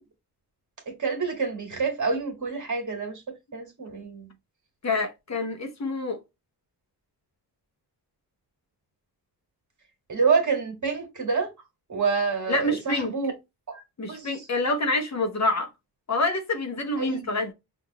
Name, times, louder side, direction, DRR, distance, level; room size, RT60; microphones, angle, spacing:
voice 1, 0.9-3.2 3.5-4.3 10.1-11.5 11.9-13.3 13.7-13.8 14.1-14.5 17.0-17.3, right 5 dB, 45° right, 1.6 m, -27 dB
voice 2, 4.8-6.2 12.5-13.2 14.0-15.7 16.1-17.5, left 2 dB, 40° left, 0.9 m, -27 dB
5.6 x 2.6 x 2.8 m
wide cardioid pair, 105°, 40 cm